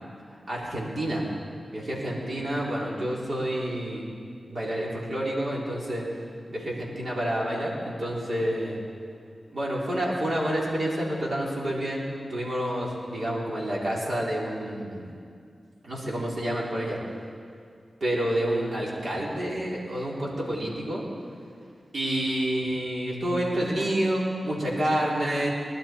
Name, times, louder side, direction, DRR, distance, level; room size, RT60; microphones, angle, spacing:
voice 1, 0.5-1.3 1.7-4.1 4.5-6.0 6.5-8.8 9.5-12.0 12.3-15.1 15.8-17.0 18.0-21.0 21.9-25.5, right 1 dB, 65° right, -5 dB, 3.7 m, -28 dB
20.0 x 12.0 x 4.5 m, 2.3 s
cardioid pair, 55°, 0 cm